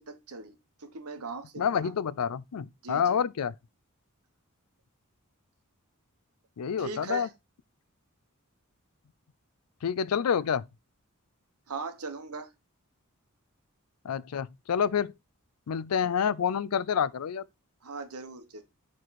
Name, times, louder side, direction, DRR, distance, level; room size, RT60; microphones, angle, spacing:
voice 1, 0.0-1.9 2.8-3.2 6.8-7.3 11.7-12.5 17.8-18.6, right 4 dB, 85° right, 1.1 m, -39 dB
voice 2, 1.6-3.5 6.6-7.3 9.8-10.6 14.0-15.1 15.7-17.4, left 7 dB, 80° left, 0.4 m, -28 dB
6.6 x 4.7 x 4.2 m
head